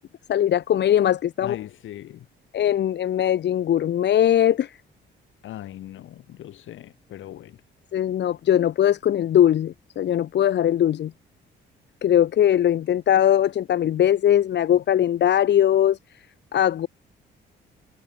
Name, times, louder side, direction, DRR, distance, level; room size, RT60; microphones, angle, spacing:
voice 1, 0.3-1.5 2.5-4.8 7.9-11.1 12.0-16.3 16.5-16.9, left 10 dB, 60° left, 1.1 m, -20 dB
voice 2, 1.4-2.3 5.4-7.6, left 13 dB, 80° left, 5.6 m, -39 dB
cardioid pair, 90°, 20 cm